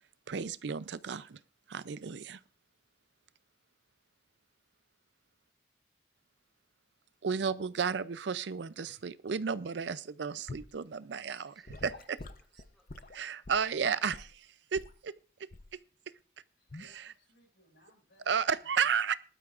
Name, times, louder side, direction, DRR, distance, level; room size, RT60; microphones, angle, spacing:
voice 1, 0.3-1.4 1.7-2.4 7.2-11.9 13.1-15.1 16.8-17.1 18.3-19.1, right 6 dB, 85° right, 16 dB, 0.5 m, -33 dB
Gurgling / Sink (filling or washing) / Liquid, 10.5-10.8 11.7-14.4 14.7-15.0 15.5-15.8 16.7-16.9, left 2 dB, 50° left, 0.7 m, -47 dB
voice 2, 11.2-13.3, equal, ahead, -2 dB, 3.9 m, -68 dB
voice 3, 16.6-19.0, left 1 dB, 85° left, -1 dB, 6.2 m, -66 dB
19.5 x 12.0 x 2.5 m, 0.38 s
head